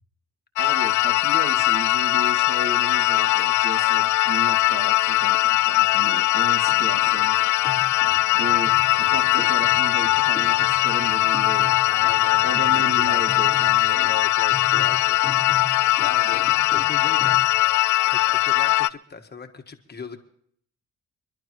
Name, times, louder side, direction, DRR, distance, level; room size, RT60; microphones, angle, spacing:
sound 1, 0.6-18.9, left 17 dB, 75° left, 0.5 m, -20 dB
voice 1, 0.6-7.4 8.3-11.8 12.4-14.1 16.2-16.4, right 3 dB, 60° right, 5 dB, 2.1 m, -35 dB
sound 2, 6.7-17.5, left 2 dB, 15° left, 1.7 m, -40 dB
voice 2, 11.6-13.5 14.1-15.2 16.0-17.5 18.1-20.2, left 5 dB, 35° left, 5 dB, 1.5 m, -38 dB
26.0 x 11.5 x 3.1 m, 0.63 s
cardioid pair, 90°, 30 cm